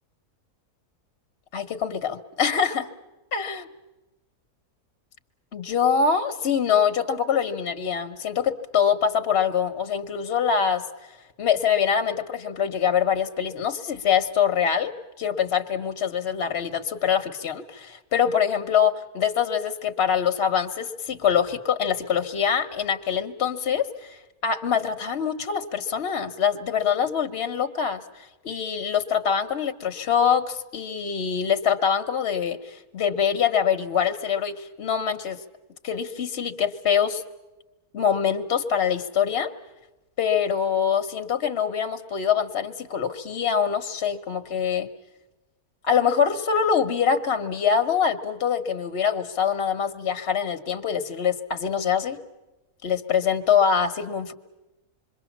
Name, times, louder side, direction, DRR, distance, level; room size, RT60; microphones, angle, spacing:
voice 1, 1.5-2.9 3.3-3.7 5.5-10.8 11.4-28.0 28.4-35.4 35.8-37.2 37.9-39.5 40.2-44.9 45.8-52.2 52.8-54.3, left 7 dB, 45° left, 8 dB, 1.2 m, -24 dB
27.0 x 22.5 x 7.3 m, 1.0 s
omnidirectional pair, 1.6 m